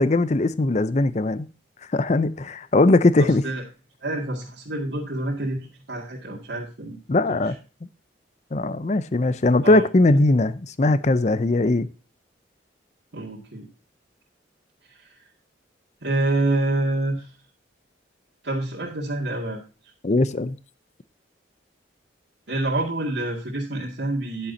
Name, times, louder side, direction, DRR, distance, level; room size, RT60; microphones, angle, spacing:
voice 1, 0.0-1.5 1.9-3.4 7.1-7.5 8.5-11.9 20.0-20.6, left 2 dB, 40° left, 0.5 m, -20 dB
voice 2, 3.2-3.6 4.0-5.6 5.9-7.0 7.3-7.4 9.6-9.8 13.1-13.7 15.0-15.1 16.0-17.3 18.4-19.6 22.5-24.5, right 2 dB, 70° right, 2.1 m, -27 dB
10.5 x 9.3 x 2.7 m
head